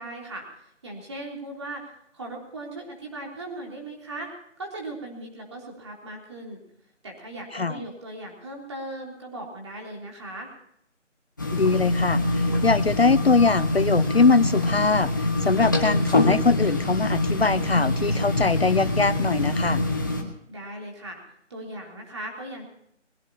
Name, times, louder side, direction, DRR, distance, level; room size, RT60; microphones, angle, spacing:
voice 1, 0.0-1.8 2.1-4.3 4.6-6.6 7.0-10.5 20.5-21.2 21.5-22.6, right 1 dB, 20° right, 0 dB, 3.3 m, -38 dB
sound 1, 11.4-20.2, left 2 dB, 15° left, 1.3 m, -24 dB
voice 2, 11.5-19.8, left 4 dB, 55° left, 16 dB, 0.6 m, -22 dB
22.0 x 16.5 x 2.8 m, 0.74 s
figure-of-eight pair, 170°, 37 cm